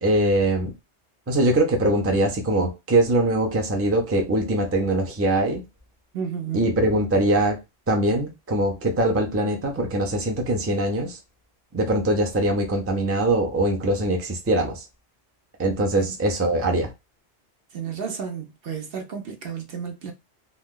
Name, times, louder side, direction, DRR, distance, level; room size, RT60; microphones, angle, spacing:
voice 1, 0.0-0.7 1.3-5.6 6.5-7.6 7.9-11.2 11.7-14.8 15.6-16.9, right 1 dB, 20° right, 0.4 m, -22 dB
voice 2, 6.1-6.6 16.0-16.1 17.7-20.1, right 7 dB, 60° right, 0.8 m, -32 dB
2.5 x 2.3 x 3.6 m
omnidirectional pair, 1.2 m